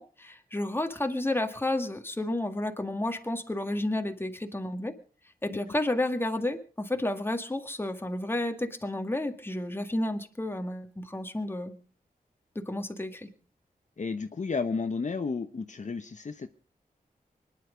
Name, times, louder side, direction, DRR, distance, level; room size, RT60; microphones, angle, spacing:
voice 1, 0.0-4.9 5.4-11.7 12.6-13.3, left 1 dB, 15° left, 6 dB, 1.9 m, -31 dB
voice 2, 14.0-16.5, left 4 dB, 50° left, 8 dB, 1.0 m, -32 dB
24.5 x 10.5 x 5.1 m, 0.40 s
wide cardioid pair, 105°, 16 cm